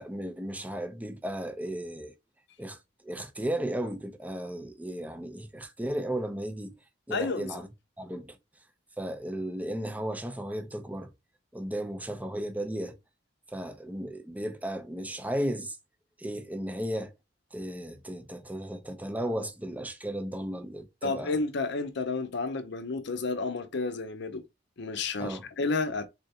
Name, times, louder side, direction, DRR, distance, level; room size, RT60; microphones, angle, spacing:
voice 1, 0.0-2.1 2.6-2.8 3.0-6.7 7.1-7.7 8.0-8.4 9.0-11.1 11.5-13.0 13.5-15.8 16.2-17.1 17.5-21.3 25.2-25.5, right 1 dB, 10° right, 0.5 m, -35 dB
voice 2, 7.1-7.6 21.0-24.4 24.8-26.1, left 3 dB, 60° left, 0.6 m, -31 dB
3.7 x 3.3 x 2.8 m
head